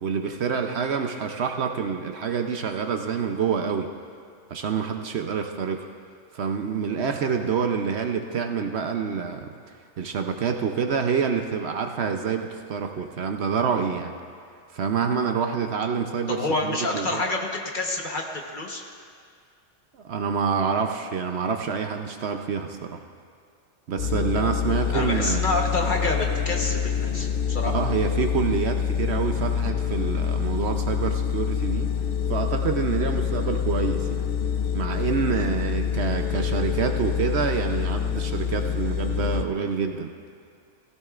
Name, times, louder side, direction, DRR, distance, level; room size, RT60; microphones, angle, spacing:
voice 1, 0.0-3.9 4.5-5.9 6.3-9.5 10.0-14.1 14.7-17.2 19.9-23.0 23.9-25.5 27.7-31.9 32.3-34.2 34.7-40.1, right 6 dB, 65° right, 5 dB, 0.9 m, -27 dB
voice 2, 16.3-18.8 24.9-27.7, left 2 dB, 40° left, 1 dB, 1.2 m, -28 dB
sound 1, 24.0-39.4, left 8 dB, 60° left, 0.7 m, -26 dB
17.0 x 15.5 x 2.4 m, 2.2 s
omnidirectional pair, 1.3 m